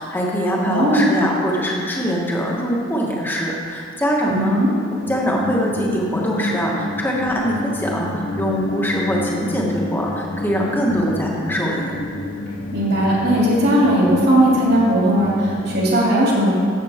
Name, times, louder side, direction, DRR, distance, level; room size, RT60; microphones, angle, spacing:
voice 1, 0.0-4.6 5.1-11.9, equal, 10° left, -3 dB, 1.5 m, -22 dB
voice 2, 0.6-1.1 4.2-4.7 12.7-16.5, right 1 dB, 55° right, -5 dB, 2.9 m, -17 dB
sound 1, 5.1-16.0, left 1 dB, 80° left, 0.8 m, -29 dB
14.0 x 7.9 x 3.6 m, 2.5 s
head